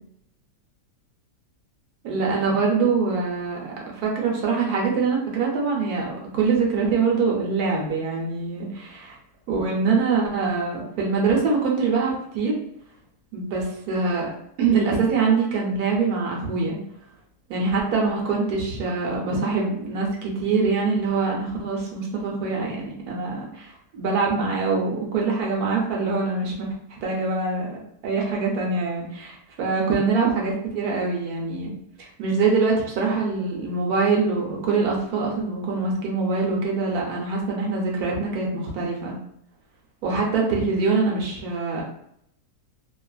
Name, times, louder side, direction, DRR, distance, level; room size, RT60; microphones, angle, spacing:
voice 1, 2.0-3.6 3.9-9.2 9.5-12.6 13.3-14.3 14.6-16.8 17.5-39.2 40.0-41.8, right 4 dB, 65° right, -2 dB, 1.1 m, -24 dB
2.8 x 2.4 x 2.3 m, 0.73 s
omnidirectional pair, 1.8 m